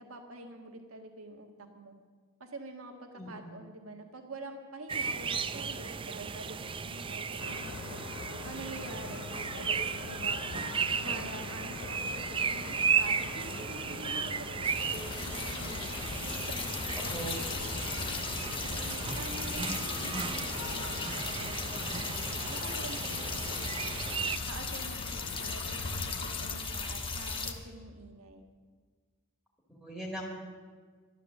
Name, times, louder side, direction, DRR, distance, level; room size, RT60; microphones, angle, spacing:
voice 1, 0.0-2.0 2.4-8.0 8.4-10.4 10.9-15.8 16.2-18.1 18.6-21.9 22.4-24.0 24.5-28.5, right 2 dB, 70° right, 4 dB, 1.6 m, -46 dB
voice 2, 3.1-3.5 11.0-11.1 17.1-17.3 19.3-19.4 29.7-30.3, right 1 dB, ahead, -2 dB, 2.0 m, -41 dB
sound 1, 4.9-24.4, right 6 dB, 25° right, 0.4 m, -35 dB
sound 2, 7.4-26.6, left 6 dB, 55° left, 0.4 m, -44 dB
sound 3, 14.6-27.5, left 4 dB, 25° left, 1.2 m, -37 dB
12.5 x 12.0 x 7.3 m, 1.5 s
head